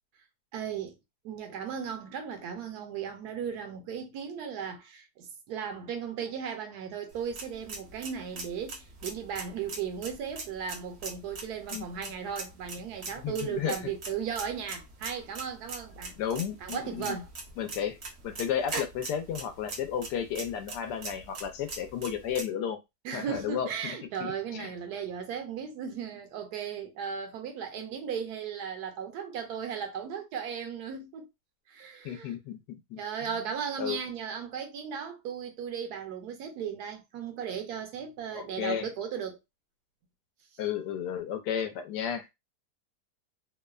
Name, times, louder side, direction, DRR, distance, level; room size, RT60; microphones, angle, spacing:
voice 1, 0.5-1.0 1.2-16.1 16.6-17.3 23.0-31.3 31.7-32.3 33.0-39.4, right 7 dB, 75° right, 1.1 m, -36 dB
sound 1, 7.1-22.4, right 3 dB, 55° right, 0.8 m, -42 dB
voice 2, 11.7-12.1 13.2-13.9 16.2-17.2 17.6-22.8 23.1-23.7 24.2-24.7 32.0-33.0 33.4-33.5 33.8-34.0 38.3-38.9 40.6-42.3, left 9 dB, 85° left, 1.2 m, -33 dB
3.0 x 2.1 x 2.3 m
omnidirectional pair, 1.8 m